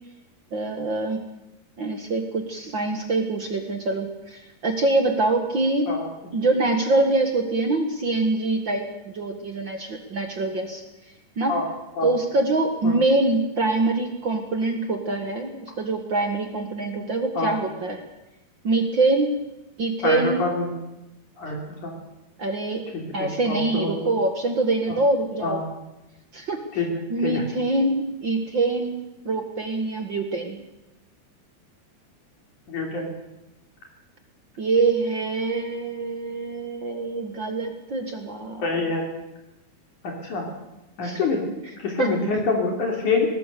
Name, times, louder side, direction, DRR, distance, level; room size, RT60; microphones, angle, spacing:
voice 1, 0.5-1.2 1.8-5.9 6.3-10.8 11.4-11.6 12.0-18.0 18.6-19.3 19.8-20.4 22.4-22.8 23.1-25.6 26.3-26.6 27.1-30.6 34.6-38.6 41.0-41.2 42.0-42.1, right 2 dB, 45° right, 5 dB, 1.6 m, -24 dB
voice 2, 20.0-20.7 21.4-21.9 22.9-24.1 24.9-25.0 25.4-25.6 26.7-26.9 27.2-27.4 32.7-33.1 38.6-39.0 40.0-40.5 41.0-41.4 41.8-43.3, left 3 dB, 55° left, 0 dB, 4.4 m, -26 dB
22.0 x 20.5 x 6.9 m, 0.95 s
omnidirectional pair, 4.4 m